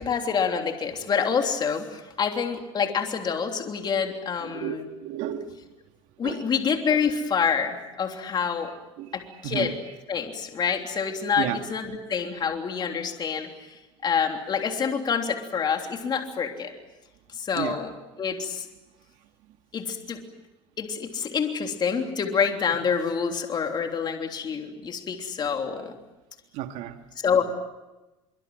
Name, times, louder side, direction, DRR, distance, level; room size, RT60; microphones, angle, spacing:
voice 1, 0.0-4.9 6.2-8.7 9.1-9.7 10.1-16.7 17.3-17.9 18.2-18.7 19.7-20.2 20.8-25.9 27.2-27.4, left 6 dB, 35° left, 4 dB, 3.3 m, -27 dB
voice 2, 4.4-5.6 6.2-6.5 9.0-9.1 9.4-9.7 11.4-11.6 17.5-17.8 26.5-27.0, right 11 dB, 70° right, 6 dB, 2.2 m, -32 dB
25.0 x 24.5 x 7.8 m, 1.0 s
supercardioid pair, 115°, 13 cm